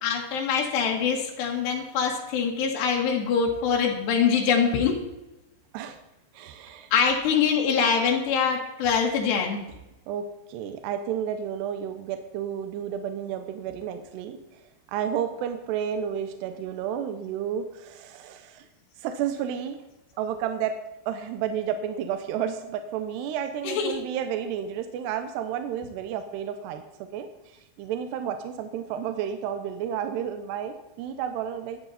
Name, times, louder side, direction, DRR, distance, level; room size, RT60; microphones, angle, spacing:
voice 1, 0.0-5.0 6.9-9.6 23.6-24.0, left 6 dB, 80° left, -1 dB, 3.9 m, -24 dB
voice 2, 6.3-6.9 10.1-14.4 14.9-18.7 19.0-19.8 20.2-20.7 21.1-26.8 27.1-27.3 27.8-31.8, right 9 dB, 80° right, 8 dB, 3.0 m, -31 dB
16.0 x 12.0 x 4.2 m, 0.98 s
omnidirectional pair, 4.8 m